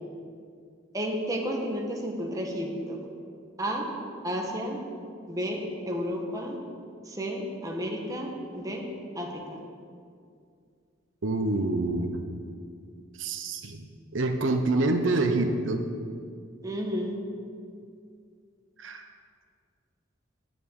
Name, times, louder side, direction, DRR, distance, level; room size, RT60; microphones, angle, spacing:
voice 1, 0.9-3.0 3.6-3.9 4.2-4.8 5.3-6.6 7.1-8.8 9.1-9.6 16.6-17.1, equal, 20° right, 0 dB, 1.6 m, -32 dB
voice 2, 11.2-12.2 13.2-13.9 14.1-15.8 18.8-19.0, right 2 dB, 90° right, 5 dB, 0.9 m, -26 dB
10.0 x 7.1 x 9.0 m, 2.3 s
head